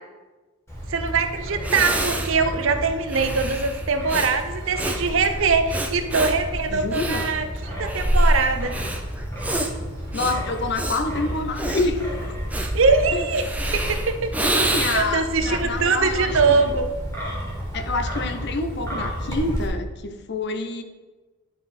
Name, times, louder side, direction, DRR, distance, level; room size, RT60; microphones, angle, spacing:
Wind, 0.7-19.7, equal, 15° left, 2.0 m, -32 dB
voice 1, 0.9-8.7 12.7-13.4 13.7-14.6 14.9-16.9, right 4 dB, 65° right, 8 dB, 0.6 m, -22 dB
Breathing, 1.2-1.3 1.6-15.3, right 1 dB, 5° right, 0.5 m, -27 dB
voice 2, 6.7-7.4 10.1-12.3 13.1-13.3 14.4-16.8 17.7-20.8, left 3 dB, 55° left, 8 dB, 0.6 m, -27 dB
sound 1, 15.0-15.2 16.1-16.7 17.6-18.2 19.1-19.7, equal, 25° right, 1.4 m, -39 dB
11.0 x 4.2 x 4.2 m, 1.2 s
head